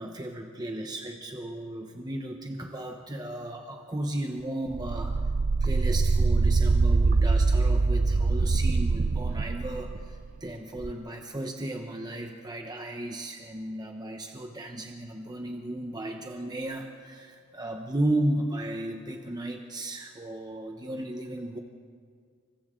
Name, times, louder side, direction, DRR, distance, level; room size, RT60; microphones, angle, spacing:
voice 1, 0.0-5.2 5.6-21.6, right 1 dB, 20° right, 3 dB, 1.0 m, -34 dB
sound 1, 4.7-10.3 10.8-10.9, right 3 dB, 40° right, 0.4 m, -24 dB
28.0 x 24.5 x 3.8 m, 2.1 s
head